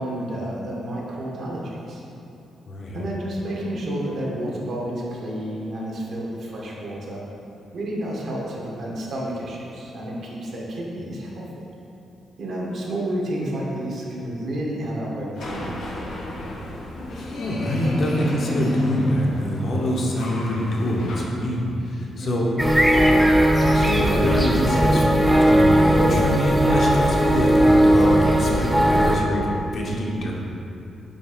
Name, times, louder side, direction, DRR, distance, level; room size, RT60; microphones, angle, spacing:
voice 1, 0.0-2.0 2.9-7.2 7.7-11.5 12.4-15.8 22.2-22.5, right 1 dB, 60° right, -3 dB, 1.4 m, -30 dB
voice 2, 2.7-3.0 17.1-22.5 23.5-30.3, equal, 50° left, -3 dB, 1.0 m, -25 dB
sound 1, 15.3-21.2, left 1 dB, 85° left, 1.1 m, -31 dB
sound 2, 22.6-29.2, equal, 5° right, 0.6 m, -17 dB
6.2 x 4.1 x 5.2 m, 2.8 s
cardioid pair, 130°, 0 cm